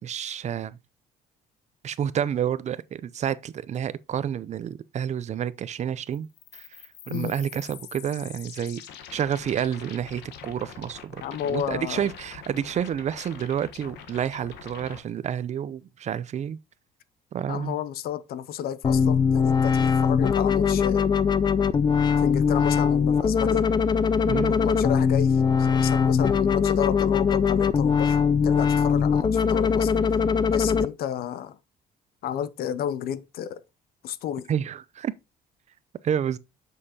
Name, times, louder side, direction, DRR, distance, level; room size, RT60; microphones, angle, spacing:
voice 1, 0.0-0.8 1.8-6.3 6.5-8.8 9.1-16.6 17.3-17.8 24.3-24.6 34.5-35.1 36.0-36.4, right 9 dB, 45° right, 0.5 m, -29 dB
sound 1, 6.1-15.0, left 8 dB, 85° left, 1.2 m, -44 dB
voice 2, 11.2-12.1 17.5-21.1 22.2-23.7 24.5-30.0 30.5-31.6 32.2-33.6 34.0-34.5, left 9 dB, 65° left, 0.6 m, -31 dB
sound 2, 18.8-30.8, left 6 dB, 25° left, 0.4 m, -21 dB
7.5 x 6.4 x 2.8 m
cardioid pair, 110°, 17 cm